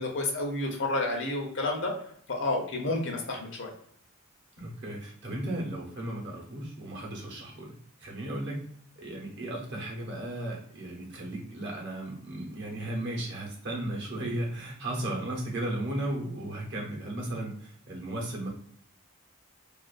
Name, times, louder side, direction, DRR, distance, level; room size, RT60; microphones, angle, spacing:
voice 1, 0.0-1.9 2.3-3.7, left 2 dB, 55° left, 1 dB, 0.6 m, -30 dB
voice 2, 4.6-7.7 8.0-8.6 9.0-18.5, right 1 dB, 55° right, -2 dB, 0.8 m, -35 dB
2.4 x 2.3 x 2.4 m, 0.66 s
head